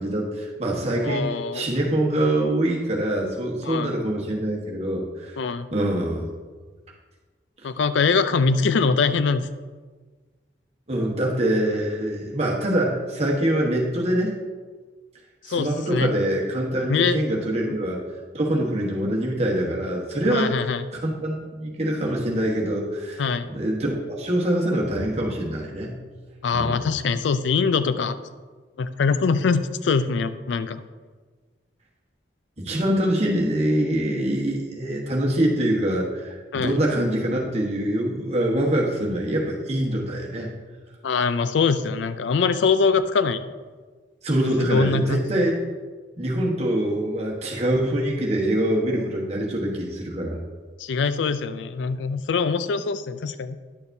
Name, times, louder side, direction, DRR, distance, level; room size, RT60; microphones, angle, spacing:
voice 1, 0.0-5.3 5.7-6.3 10.9-14.3 15.5-18.0 18.3-23.2 23.5-26.0 26.5-26.8 32.6-40.5 44.2-45.6 46.2-50.4, right 1 dB, 35° right, -2 dB, 1.2 m, -24 dB
voice 2, 1.0-1.7 3.6-3.9 5.4-5.7 7.6-9.5 15.5-16.1 16.9-17.2 17.7-17.8 20.3-20.8 23.2-23.5 26.4-28.2 28.8-30.8 36.5-36.8 41.0-43.4 44.6-45.3 50.8-53.6, left 5 dB, 75° left, 12 dB, 0.4 m, -23 dB
10.5 x 6.8 x 2.7 m, 1.4 s
head